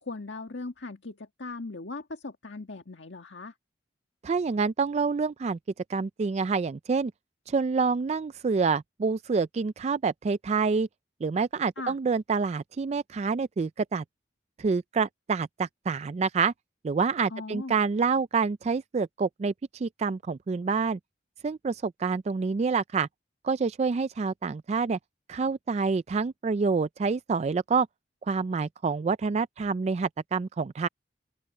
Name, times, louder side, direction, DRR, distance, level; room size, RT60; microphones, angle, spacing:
voice 1, 0.0-3.5 11.8-12.0 17.3-17.7, left 3 dB, 85° left, 1.7 m, -39 dB
voice 2, 4.2-5.6 5.9-7.1 7.5-10.9 11.2-14.0 14.6-16.5 16.8-21.0 21.4-23.1 23.4-25.0 25.3-27.9 28.3-30.9, right 5 dB, 35° right, 0.3 m, -27 dB
open air
head